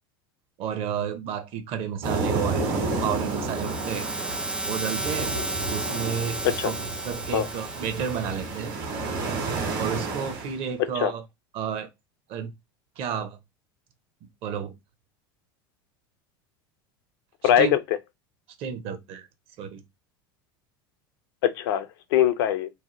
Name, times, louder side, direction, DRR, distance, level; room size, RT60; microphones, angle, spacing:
voice 1, 0.6-4.1 4.6-5.3 5.7-8.8 9.8-11.2 11.5-11.9 12.3-12.5 13.0-13.4 14.2-14.7 17.6-17.8 18.6-19.3 19.6-19.8, right 8 dB, 50° right, 0.6 m, -31 dB
sound 1, 2.0-10.6, right 3 dB, 65° right, 1.3 m, -31 dB
sound 2, 2.6-8.8, right 2 dB, 5° right, 0.3 m, -34 dB
voice 2, 17.4-17.8 21.4-22.7, left 10 dB, 75° left, 0.4 m, -22 dB
2.8 x 2.0 x 3.0 m
hypercardioid pair, 95°, 12 cm